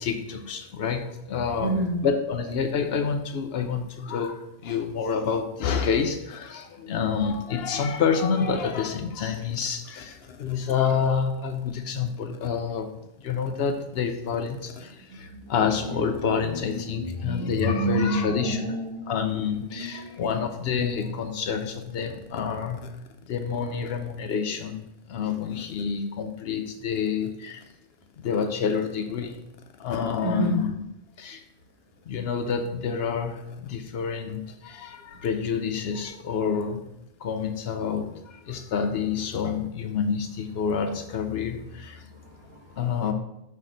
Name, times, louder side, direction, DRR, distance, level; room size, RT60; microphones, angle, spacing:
voice 1, 0.0-18.6 19.1-22.9 23.2-27.6 28.2-29.4 29.8-30.7 31.2-31.4 32.1-36.8 37.2-42.1 42.8-43.1, left 6 dB, 65° left, 6 dB, 0.6 m, -28 dB
voice 2, 1.6-2.0 15.1-19.1 19.5-20.3 30.2-30.6 42.1-42.8, right 1 dB, 75° right, -2 dB, 1.6 m, -30 dB
5.9 x 3.3 x 5.0 m, 0.85 s
omnidirectional pair, 1.5 m